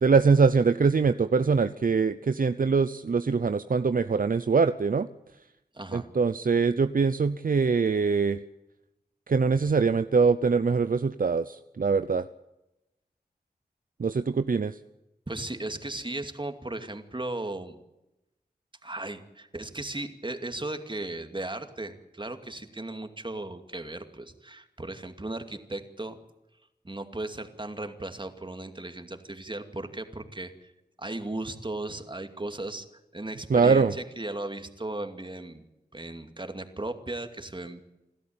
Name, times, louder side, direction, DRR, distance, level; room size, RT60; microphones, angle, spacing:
voice 1, 0.0-5.1 5.9-8.4 9.3-12.2 14.0-14.8 33.5-33.9, right 5 dB, 55° right, 12 dB, 0.7 m, -23 dB
voice 2, 5.7-6.1 15.3-17.8 18.8-26.2 26.8-30.7 31.0-32.9 33.1-35.6 35.9-37.8, right 2 dB, 30° right, 7 dB, 2.4 m, -36 dB
28.0 x 13.0 x 8.8 m, 0.93 s
wide cardioid pair, 55°, 17 cm